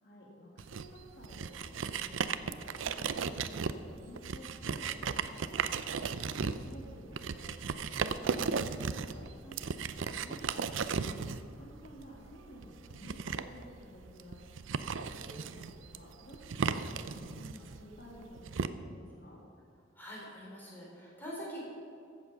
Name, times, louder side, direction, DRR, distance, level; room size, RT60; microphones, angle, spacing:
voice 1, 0.0-11.2 11.5-14.4 15.2-19.4, equal, 55° left, -3 dB, 2.0 m, -53 dB
sound 1, 0.6-18.7, right 5 dB, 85° right, 0.5 m, -36 dB
voice 2, 19.9-21.6, equal, 10° left, -5 dB, 3.7 m, -45 dB
14.5 x 8.2 x 5.9 m, 2.4 s
head